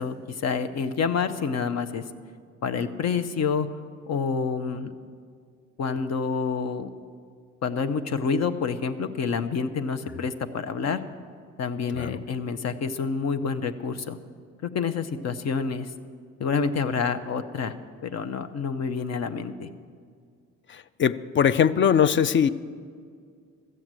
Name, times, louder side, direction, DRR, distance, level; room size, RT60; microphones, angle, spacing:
voice 1, 0.0-2.0 2.6-3.7 4.1-4.9 5.8-6.9 7.6-11.0 11.6-14.2 14.6-15.9 16.4-17.7 18.0-19.7, left 5 dB, 60° left, 9 dB, 0.8 m, -28 dB
voice 2, 21.0-22.5, left 8 dB, 40° left, 15 dB, 0.4 m, -21 dB
13.5 x 7.8 x 7.5 m, 2.1 s
cardioid pair, 90°, 30 cm